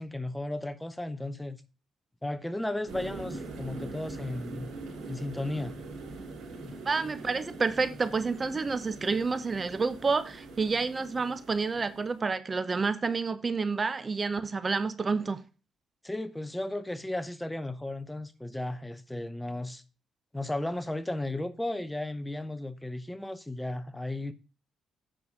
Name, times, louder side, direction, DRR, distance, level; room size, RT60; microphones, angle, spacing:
voice 1, 0.0-1.6 2.2-4.7 5.0-5.8 16.0-19.8 20.3-24.3, left 1 dB, 10° left, 0.8 m, -35 dB
sound 1, 2.9-12.2, right 3 dB, 80° right, 4.1 m, -43 dB
voice 2, 6.8-15.4, right 4 dB, 30° right, 0.8 m, -29 dB
9.1 x 6.1 x 5.0 m
cardioid pair, 90°, 0 cm